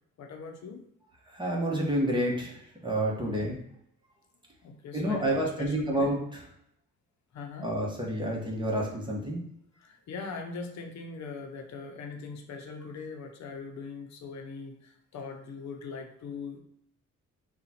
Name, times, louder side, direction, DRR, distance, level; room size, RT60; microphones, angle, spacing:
voice 1, 0.2-0.8 3.2-3.5 4.6-6.1 7.3-7.7 9.8-16.6, left 4 dB, 65° left, 3 dB, 0.7 m, -41 dB
voice 2, 1.3-3.6 4.9-6.2 7.6-9.4, right 1 dB, 15° right, -2 dB, 1.2 m, -29 dB
3.8 x 2.4 x 4.2 m, 0.72 s
cardioid pair, 90°, 30 cm